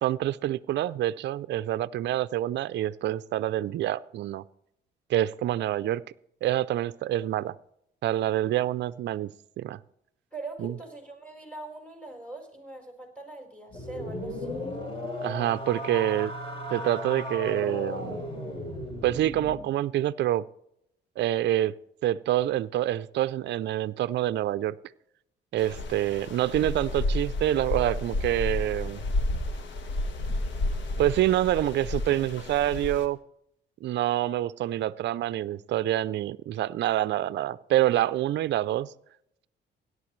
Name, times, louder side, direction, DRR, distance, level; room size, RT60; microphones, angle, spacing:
voice 1, 0.0-4.4 5.1-6.0 6.4-7.6 8.0-9.8 10.6-10.7 15.2-16.3 16.7-18.2 19.0-20.4 21.2-21.7 22.0-24.8 25.5-29.0 31.0-33.2 33.8-38.9, right 13 dB, 65° right, 0.4 m, -27 dB
voice 2, 10.3-14.7, right 2 dB, 5° left, 4.3 m, -42 dB
sound 1, 13.7-19.6, left 1 dB, 30° left, 3.8 m, -35 dB
sound 2, 25.6-33.0, left 2 dB, 65° left, 1.4 m, -31 dB
17.5 x 11.0 x 3.2 m
cardioid pair, 90°, 20 cm